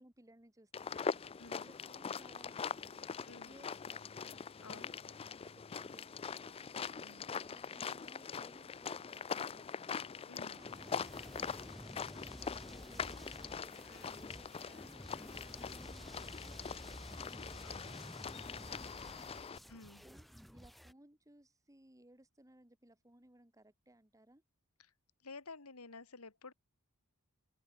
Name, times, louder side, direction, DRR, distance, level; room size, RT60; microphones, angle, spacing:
voice 1, 0.0-1.3 1.6-3.1 3.4-4.3 4.7-5.2 5.5-10.0 10.4-11.7 12.1-15.3 15.5-19.6 20.0-20.3 20.5-24.4, right 1 dB, 15° right, 2.1 m, -63 dB
sound 1, 0.7-19.6, left 6 dB, 25° left, 0.4 m, -43 dB
voice 2, 1.4-1.7 3.3-3.6 4.6-5.0 7.0-7.2 10.3-10.6 13.9-14.1 17.6-18.0 19.7-20.1 25.2-26.5, left 3 dB, 80° left, 2.1 m, -52 dB
sound 2, 10.6-20.9, equal, ahead, 0.9 m, -52 dB
open air
head